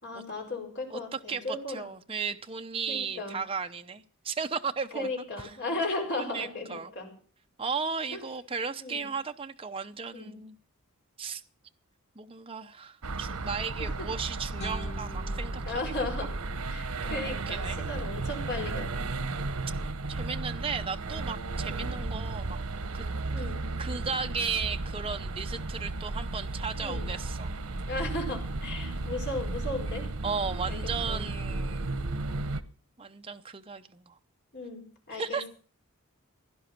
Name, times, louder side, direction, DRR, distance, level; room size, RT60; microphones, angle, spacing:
voice 1, 0.0-1.9 2.9-3.4 4.9-7.1 8.1-8.2 8.8-9.1 10.1-10.3 13.8-14.1 15.7-16.3 16.7-19.1 21.7-21.9 23.3-23.6 26.8-27.1 27.8-30.1 30.7-30.8 31.1-31.2 34.5-35.5, left 2 dB, 50° left, 2 dB, 4.8 m, -36 dB
voice 2, 0.9-5.1 5.4-5.5 6.2-6.9 7.6-10.6 11.2-11.4 12.2-15.9 17.1-17.8 20.1-22.6 22.9-23.0 23.4-27.5 30.2-31.9 33.0-34.2 35.1-35.5, right 5 dB, 25° right, 6 dB, 0.7 m, -35 dB
sound 1, 13.0-32.6, right 2 dB, 85° right, 1.0 m, -34 dB
sound 2, 14.6-17.6, left 1 dB, 30° left, 1.5 m, -46 dB
16.5 x 11.5 x 5.9 m, 0.42 s
head